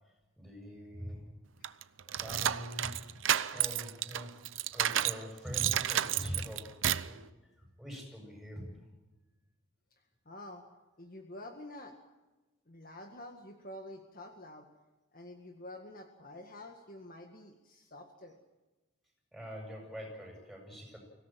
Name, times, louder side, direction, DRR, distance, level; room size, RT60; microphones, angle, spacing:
voice 1, 0.4-1.2 2.1-4.3 4.7-6.7 7.0-7.2 7.8-9.0 19.3-21.0, equal, ahead, 1 dB, 7.8 m, -43 dB
sound 1, 1.6-5.2 5.5-7.1, right 10 dB, 70° right, 0.7 m, -31 dB
voice 2, 9.9-10.6 11.0-12.0 12.7-14.7 15.1-18.4, left 1 dB, 45° left, 4 dB, 1.9 m, -48 dB
25.0 x 17.0 x 7.7 m, 1.1 s
head